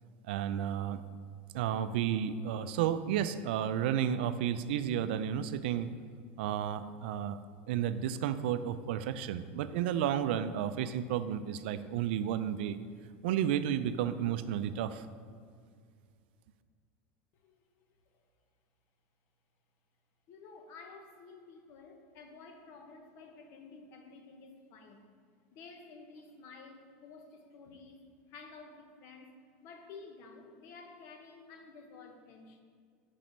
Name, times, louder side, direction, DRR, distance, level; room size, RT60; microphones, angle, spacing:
voice 1, 0.3-1.0 1.5-5.9 6.4-7.4 7.7-12.8 13.2-15.1, right 9 dB, 85° right, 12 dB, 0.3 m, -32 dB
voice 2, 20.3-25.1 25.5-29.3 29.6-32.6, left 4 dB, 45° left, 4 dB, 0.8 m, -52 dB
6.1 x 4.1 x 5.1 m, 2.1 s
supercardioid pair, 165°, 6 cm